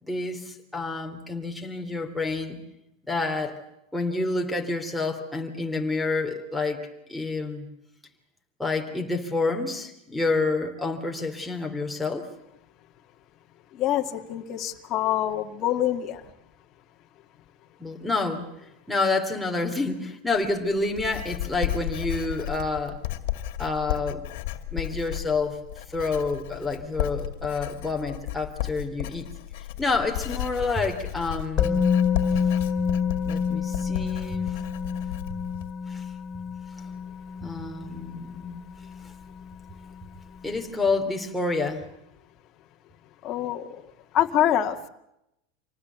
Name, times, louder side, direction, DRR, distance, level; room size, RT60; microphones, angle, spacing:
voice 1, 0.0-2.6 3.1-3.6 3.9-6.8 7.1-7.7 8.6-12.3 17.8-18.5 18.9-23.0 23.6-24.2 24.7-25.6 25.9-29.3 29.6-31.8 32.4-32.5 33.2-34.6 35.9-36.0 37.4-38.6 40.4-41.8, left 3 dB, 5° left, 0 dB, 3.2 m, -28 dB
voice 2, 13.8-16.2 43.2-43.8 44.1-44.8, left 11 dB, 40° left, 3 dB, 2.0 m, -25 dB
Writing, 20.3-35.7, left 14 dB, 70° left, 2.3 m, -33 dB
Musical instrument, 31.6-39.5 39.8-39.9, left 6 dB, 20° left, 4.3 m, -28 dB
26.5 x 19.0 x 8.3 m, 0.84 s
supercardioid pair, 125°, 0 cm